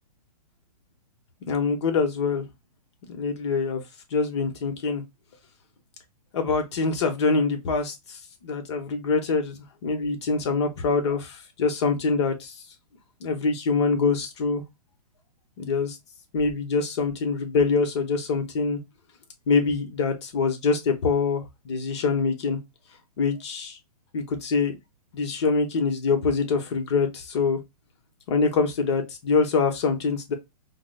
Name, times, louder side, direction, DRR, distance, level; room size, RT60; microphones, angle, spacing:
voice 1, 1.5-2.4 3.1-3.8 4.1-5.0 6.3-9.5 9.8-12.5 13.2-14.6 15.6-16.0 16.3-18.8 19.5-22.6 23.2-23.8 24.1-24.8 25.1-27.6 28.3-30.3, left 4 dB, 45° left, 0.9 m, -24 dB
4.8 x 2.0 x 2.2 m
hypercardioid pair, 155°, 21 cm